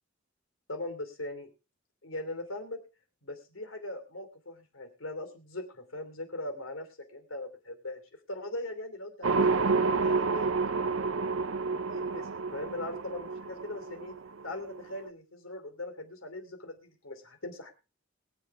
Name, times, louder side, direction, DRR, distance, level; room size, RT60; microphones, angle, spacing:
voice 1, 0.7-1.5 2.0-2.8 3.2-8.0 8.3-10.6 11.9-14.1 14.4-17.7, left 2 dB, 85° left, 6 dB, 3.0 m, -40 dB
sound 1, 9.2-15.1, right 4 dB, 80° right, 0.7 m, -29 dB
22.5 x 7.8 x 3.6 m, 0.29 s
head